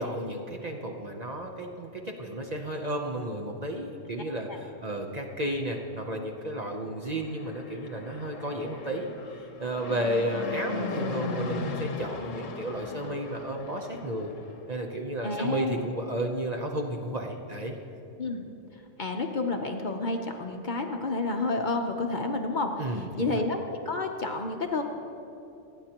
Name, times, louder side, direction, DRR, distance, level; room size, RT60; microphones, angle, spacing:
voice 1, 0.0-14.3 14.7-17.8 22.8-23.4, right 1 dB, 40° right, 1 dB, 0.8 m, -33 dB
Fixed-wing aircraft airplane, 7.2-14.6, left 3 dB, 85° left, 1.3 m, -37 dB
voice 2, 15.2-15.8 18.2-18.5 19.0-22.7 23.1-24.8, left 3 dB, 45° left, 3 dB, 0.8 m, -30 dB
28.0 x 9.8 x 2.9 m, 2.8 s
omnidirectional pair, 1.3 m